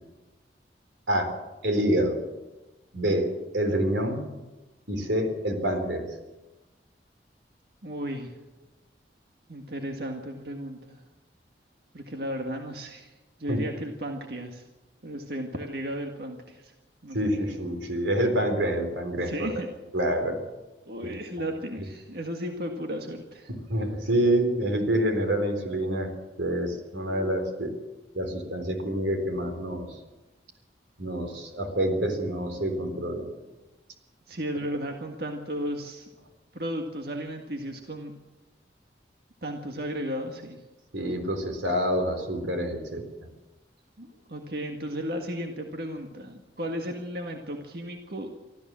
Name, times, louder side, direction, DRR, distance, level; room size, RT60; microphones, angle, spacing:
voice 1, 1.6-2.2 2.9-4.2 4.9-6.0 13.5-13.6 17.1-19.5 19.9-20.4 21.0-21.1 23.7-26.1 26.4-27.7 28.1-29.9 31.0-33.3 40.9-43.0, right 1 dB, 90° right, 6 dB, 3.9 m, -27 dB
voice 2, 7.8-8.3 9.5-11.0 11.9-13.1 13.4-14.6 15.0-16.7 17.0-17.2 19.2-19.7 20.9-23.5 34.3-36.1 36.5-38.1 39.4-40.6 44.0-48.3, equal, 60° right, 3 dB, 1.8 m, -34 dB
24.5 x 14.0 x 7.6 m, 1.1 s
head